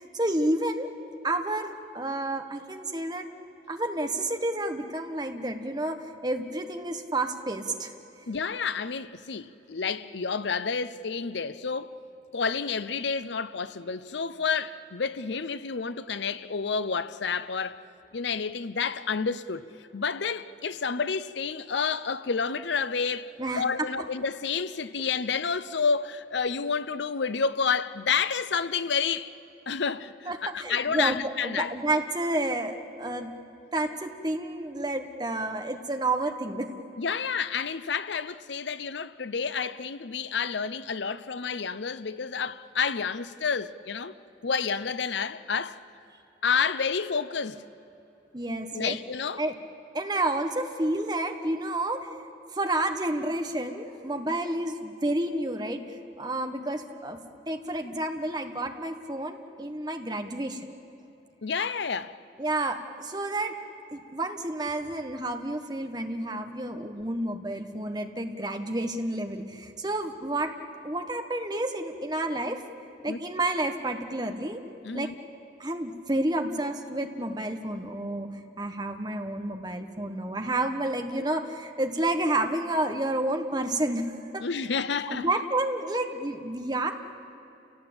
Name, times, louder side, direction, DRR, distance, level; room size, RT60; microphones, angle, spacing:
voice 1, 0.1-0.9 1.2-3.3 3.7-7.9 23.4-23.9 30.3-33.3 33.7-36.7 48.3-49.0 49.4-49.5 49.9-52.1 52.5-57.2 57.5-60.7 62.4-63.5 63.9-70.5 70.8-72.6 73.0-74.6 74.9-75.1 75.6-84.4 85.1-86.9, right 1 dB, 20° right, 1.3 m, -30 dB
voice 2, 8.3-12.0 12.3-17.8 18.1-19.6 19.9-29.3 29.7-31.7 37.0-44.1 44.4-45.8 46.4-47.6 48.7-49.4 61.4-62.2 73.1-73.2 74.8-75.1 84.4-85.3, left 5 dB, 70° left, 0.7 m, -29 dB
29.5 x 17.5 x 8.8 m
head